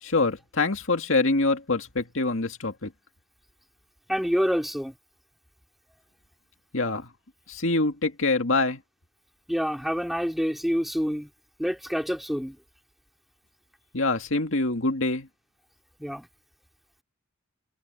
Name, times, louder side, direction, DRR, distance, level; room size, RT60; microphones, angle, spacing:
voice 1, 0.0-2.9 6.7-7.1 7.5-8.8 13.9-15.3, left 3 dB, 70° left, 2.1 m, -25 dB
voice 2, 4.1-4.9 9.5-11.3 11.6-12.6 16.0-16.3, equal, ahead, 3.2 m, -27 dB
head